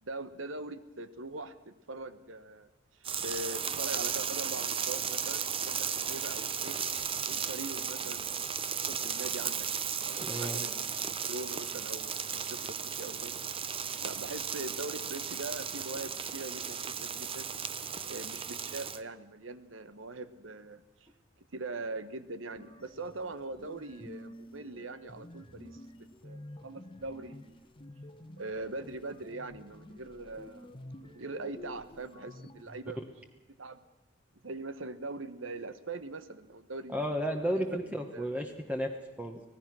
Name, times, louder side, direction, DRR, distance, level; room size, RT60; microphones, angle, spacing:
voice 1, 0.0-2.7 3.2-6.8 7.2-8.3 8.7-9.7 10.0-10.8 11.1-13.5 14.0-17.5 18.0-20.8 21.5-27.6 28.4-33.0 33.6-33.8 34.4-37.2 37.5-37.8 38.1-38.3, right 2 dB, 85° right, 13 dB, 1.2 m, -42 dB
sound 1, 3.0-19.0, right 7 dB, 30° right, 0.7 m, -35 dB
voice 2, 10.2-10.6 36.9-39.4, equal, 10° right, 4 dB, 1.2 m, -33 dB
sound 2, 22.5-32.8, left 1 dB, 25° left, 1.1 m, -50 dB
25.5 x 17.5 x 6.2 m, 1.0 s
head